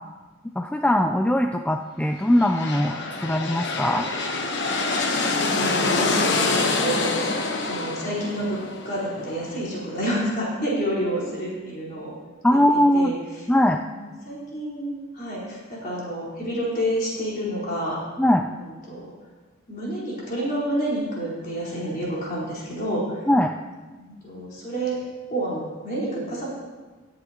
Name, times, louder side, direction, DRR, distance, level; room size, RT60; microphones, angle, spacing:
voice 1, 0.6-4.1 12.4-13.1 13.5-13.8 18.2-18.5 23.3-23.5, left 1 dB, 5° left, 4 dB, 0.3 m, -20 dB
sound 1, 2.2-9.9, left 3 dB, 60° left, 1.1 m, -26 dB
voice 2, 5.3-7.1 7.7-8.6 8.8-12.2 12.9-13.2 13.7-18.0 18.5-19.1 19.7-23.2 24.0-25.0 25.3-26.5, right 1 dB, 45° left, -7 dB, 4.3 m, -29 dB
20.5 x 7.9 x 2.9 m, 1.3 s
head